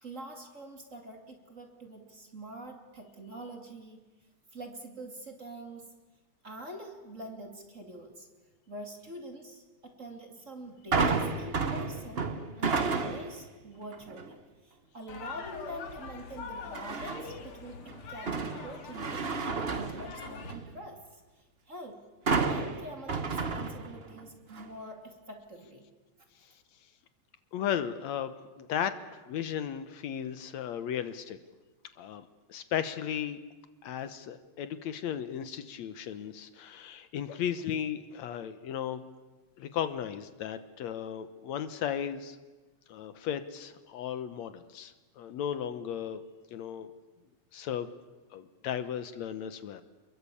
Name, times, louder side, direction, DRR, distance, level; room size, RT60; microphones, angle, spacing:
voice 1, 0.0-4.0 4.5-5.8 6.4-8.3 8.7-12.3 12.6-22.0 22.5-25.8, right 1 dB, 25° right, 4 dB, 2.8 m, -45 dB
sound 1, 10.9-13.4 13.9-14.3 16.7-17.4 17.9-20.7 22.3-24.2 24.5-24.7, right 4 dB, 85° right, 0.5 m, -31 dB
sound 2, 15.1-20.5, left 5 dB, 50° left, 2.8 m, -44 dB
voice 2, 27.5-29.0 29.3-31.4 32.0-33.4 33.8-39.0 39.6-42.4 42.9-46.2 46.5-46.9 47.5-47.9 48.3-49.8, left 9 dB, 70° left, 11 dB, 2.2 m, -35 dB
28.5 x 22.0 x 8.5 m, 1.2 s
omnidirectional pair, 3.4 m